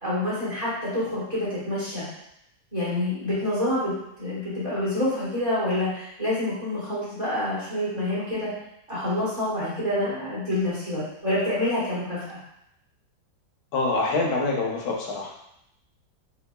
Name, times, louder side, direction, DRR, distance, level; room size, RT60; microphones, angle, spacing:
voice 1, 0.0-2.0 2.7-3.9 4.2-8.5 8.9-12.4, left 1 dB, 20° right, -10 dB, 1.2 m, -27 dB
voice 2, 13.7-15.3, left 3 dB, 65° left, -2 dB, 1.1 m, -25 dB
3.7 x 3.1 x 2.2 m, 0.79 s
omnidirectional pair, 2.1 m